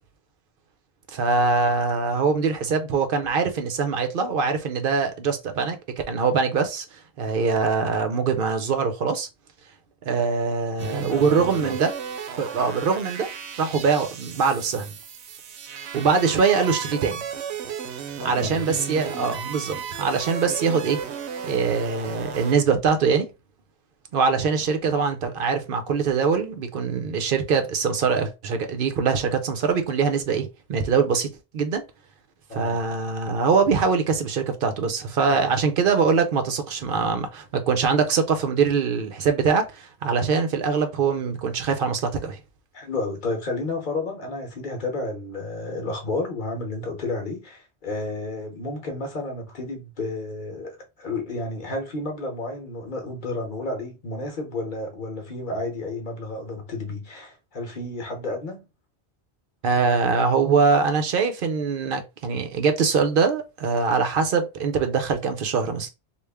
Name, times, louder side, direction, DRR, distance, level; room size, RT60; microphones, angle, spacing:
voice 1, 1.1-5.8 6.1-9.3 10.0-11.9 12.3-13.3 13.6-14.9 15.9-17.2 18.2-21.0 21.4-23.3 24.1-31.3 31.5-31.8 32.5-42.4 59.6-65.9, right 5 dB, 60° right, 0.7 m, -23 dB
sound 1, 10.8-22.5, right 7 dB, 90° right, 0.9 m, -35 dB
voice 2, 11.1-11.8 18.2-18.6 32.5-32.8 35.3-35.4 42.7-58.7, left 2 dB, 50° left, 1.0 m, -31 dB
3.2 x 2.4 x 3.4 m
omnidirectional pair, 1.1 m